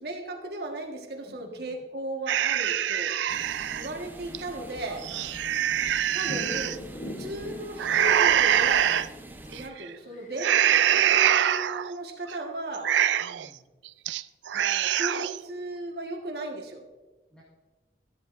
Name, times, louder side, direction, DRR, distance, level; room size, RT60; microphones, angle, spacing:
voice 1, 0.0-3.2 3.7-5.1 6.1-9.0 9.5-10.6 10.9-12.9 14.5-16.8, right 1 dB, 65° right, 2 dB, 1.5 m, -36 dB
voice 2, 1.3-1.7 5.1-5.4 13.2-13.7 17.3-17.4, equal, 5° left, -6 dB, 1.9 m, -53 dB
sound 1, 2.3-3.9 4.3-4.4 4.9-6.8 7.8-9.1 9.5-9.9 10.4-11.9 12.3-12.4 12.7-13.5 13.9-14.2 14.5-15.4, right 10 dB, 90° right, 0.4 m, -24 dB
sound 2, 3.3-9.7, right 1 dB, 10° right, 0.5 m, -45 dB
sound 3, 3.4-10.4, left 1 dB, 45° left, 0.9 m, -43 dB
13.0 x 12.5 x 2.6 m, 1.2 s
head